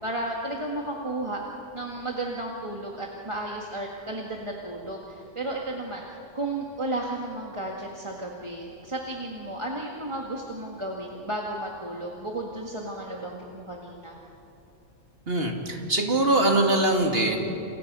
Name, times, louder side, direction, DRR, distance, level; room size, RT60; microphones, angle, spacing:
voice 1, 0.0-1.4 1.7-14.2, right 1 dB, 25° right, -2 dB, 2.0 m, -33 dB
voice 2, 15.3-17.4, right 1 dB, 50° right, 2 dB, 2.9 m, -22 dB
29.0 x 29.0 x 5.6 m, 2.9 s
omnidirectional pair, 1.3 m